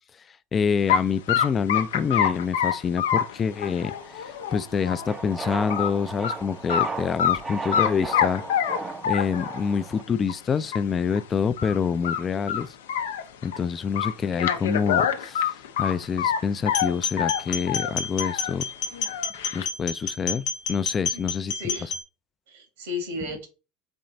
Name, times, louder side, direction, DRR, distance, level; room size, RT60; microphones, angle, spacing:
voice 1, 0.5-8.4 9.0-12.8 13.4-18.6 19.5-21.5, left 6 dB, 30° left, 0.4 m, -26 dB
sound 1, 0.9-1.0 1.3-5.1 5.5-5.9 6.2-6.3 6.7-7.4 7.7-9.7 10.3-10.4 10.7-10.8 11.1-11.2 11.6-11.8 12.0-13.6 14.0-16.4 16.7-18.5 18.9-19.6, left 9 dB, 80° left, 0.6 m, -26 dB
sound 2, 3.5-10.0, right 3 dB, 25° right, 0.5 m, -36 dB
sound 3, 16.7-22.0, left 6 dB, 60° left, 0.9 m, -30 dB
voice 2, 21.1-21.9 22.5-23.5, left 3 dB, 80° right, 1.7 m, -34 dB
4.4 x 3.1 x 3.9 m
hypercardioid pair, 85°, 0 cm